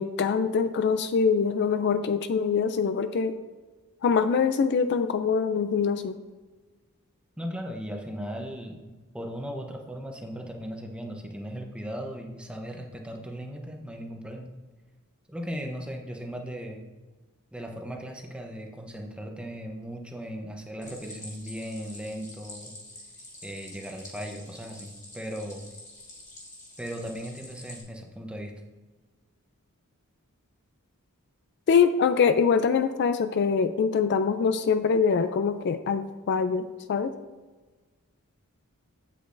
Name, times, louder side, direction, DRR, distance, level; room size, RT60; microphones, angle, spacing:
voice 1, 0.0-3.3 4.0-6.2 31.7-37.1, left 6 dB, 50° left, 10 dB, 0.3 m, -24 dB
voice 2, 7.4-14.5 15.3-16.8 17.5-22.7 23.4-25.6 26.8-28.5, equal, 5° right, 2 dB, 0.8 m, -37 dB
Stream, 20.8-27.8, left 1 dB, 15° left, 1.8 m, -47 dB
8.2 x 8.1 x 2.6 m, 1.3 s
head